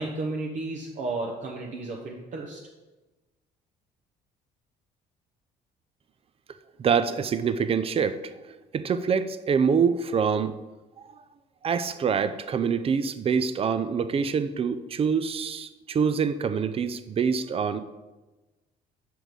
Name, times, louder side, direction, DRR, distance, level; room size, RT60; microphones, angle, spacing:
voice 1, 0.0-2.6, right 2 dB, 50° right, -1 dB, 0.9 m, -33 dB
voice 2, 6.8-8.3 8.7-10.5 11.6-17.8, right 6 dB, 35° right, 12 dB, 0.5 m, -25 dB
6.1 x 4.8 x 5.2 m, 1.1 s
cardioid pair, 110°, 17 cm